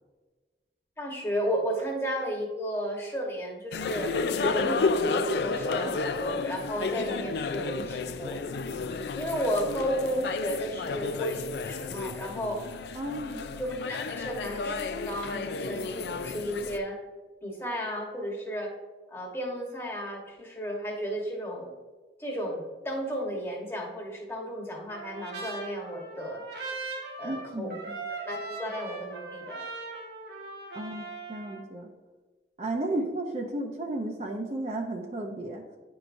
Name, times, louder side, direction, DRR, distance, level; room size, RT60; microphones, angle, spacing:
voice 1, 1.0-8.4 9.1-12.6 13.6-17.0 17.4-18.7 19.1-21.7 22.2-26.4 27.2-27.7 28.2-29.6 32.9-33.0, equal, 15° left, -1 dB, 1.1 m, -33 dB
sound 1, 3.7-16.8, left 4 dB, 70° left, 0.4 m, -32 dB
voice 2, 12.9-13.4 27.2-28.0 30.7-31.9 32.6-35.6, right 2 dB, 40° right, 2 dB, 0.5 m, -33 dB
Trumpet, 24.9-31.6, right 3 dB, 65° right, 1.3 m, -39 dB
9.7 x 4.7 x 2.6 m, 1.3 s
head